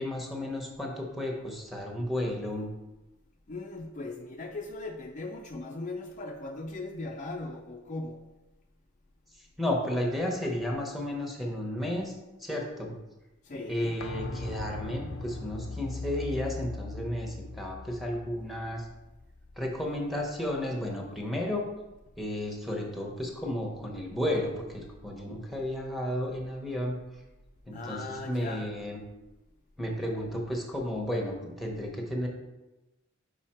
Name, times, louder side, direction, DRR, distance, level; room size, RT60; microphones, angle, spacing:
voice 1, 0.0-2.7 9.6-12.1 12.4-13.0 13.7-18.9 19.6-21.6 22.2-27.0 27.7-29.0 29.8-32.3, left 1 dB, ahead, 0 dB, 0.9 m, -33 dB
voice 2, 3.5-8.2 13.4-14.0 27.7-28.7, left 2 dB, 35° left, 2 dB, 0.4 m, -38 dB
sound 1, 14.0-19.6 19.9-20.0, left 3 dB, 80° left, 0.6 m, -39 dB
5.4 x 4.9 x 4.3 m, 1.0 s
head